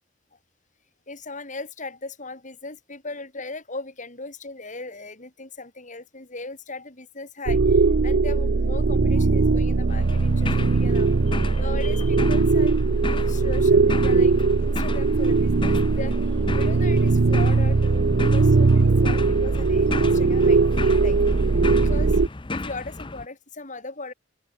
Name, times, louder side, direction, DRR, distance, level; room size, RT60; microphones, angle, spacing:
voice 1, 1.1-12.8 13.0-14.3 14.6-16.2 16.5-21.2 21.8-22.2 22.5-24.1, left 3 dB, 45° left, 7.3 m, -38 dB
sound 1, 7.5-22.3, right 3 dB, 65° right, 0.6 m, -20 dB
sound 2, 9.9-23.3, left 2 dB, 25° left, 0.9 m, -34 dB
open air
head